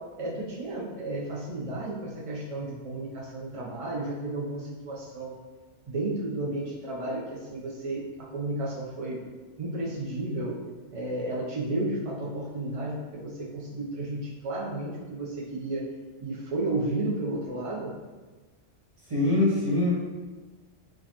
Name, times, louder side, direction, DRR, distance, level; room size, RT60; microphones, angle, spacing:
voice 1, 0.0-5.3 5.9-9.2 9.6-10.6 10.9-15.8 16.2-17.9, right 2 dB, 60° right, -4 dB, 0.3 m, -32 dB
voice 2, 19.1-19.9, left 2 dB, 30° right, -6 dB, 1.0 m, -23 dB
4.5 x 2.3 x 2.8 m, 1.3 s
omnidirectional pair, 1.2 m